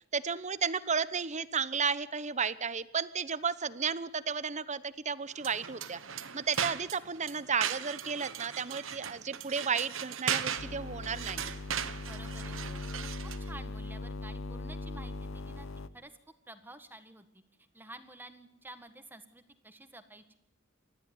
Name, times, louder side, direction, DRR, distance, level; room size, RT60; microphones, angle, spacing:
voice 1, 0.1-6.0 6.3-11.5, right 6 dB, 35° right, 16 dB, 1.0 m, -33 dB
sound 1, 5.4-13.5, right 8 dB, 75° right, 1.3 m, -38 dB
sound 2, 10.6-15.9, left 3 dB, 80° left, 1.0 m, -40 dB
voice 2, 12.0-13.1 13.4-15.7 15.9-16.1 16.5-17.3 17.7-20.4, right 1 dB, 10° right, 9 dB, 1.7 m, -51 dB
29.5 x 13.5 x 9.7 m, 0.76 s
head